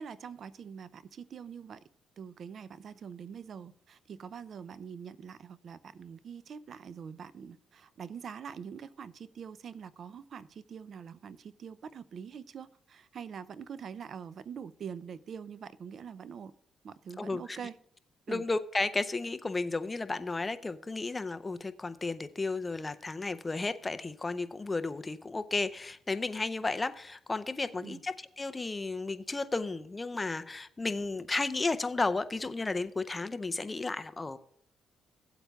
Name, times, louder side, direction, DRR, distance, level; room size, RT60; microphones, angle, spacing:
voice 1, 0.0-1.8 2.2-16.5 16.8-17.8 18.3-18.4 27.8-28.0, right 7 dB, 55° right, 17 dB, 0.4 m, -44 dB
voice 2, 17.2-17.6 18.3-34.4, left 3 dB, 20° left, 11 dB, 0.5 m, -33 dB
16.5 x 8.1 x 2.3 m, 0.66 s
cardioid pair, 90°, 0 cm